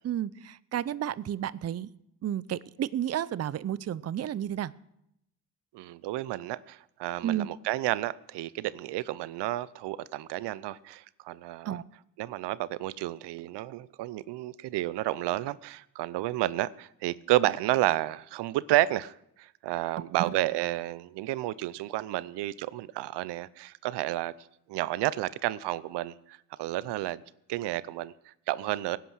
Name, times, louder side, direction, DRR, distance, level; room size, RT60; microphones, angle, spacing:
voice 1, 0.0-1.9 2.2-4.7 7.2-7.5 11.7-11.8 20.2-20.3, right 11 dB, 40° right, 0.6 m, -31 dB
voice 2, 5.7-11.8 12.2-24.3 24.7-27.2 27.5-29.0, right 15 dB, 80° right, 0.7 m, -31 dB
17.5 x 10.5 x 6.2 m
cardioid pair, 80°, 41 cm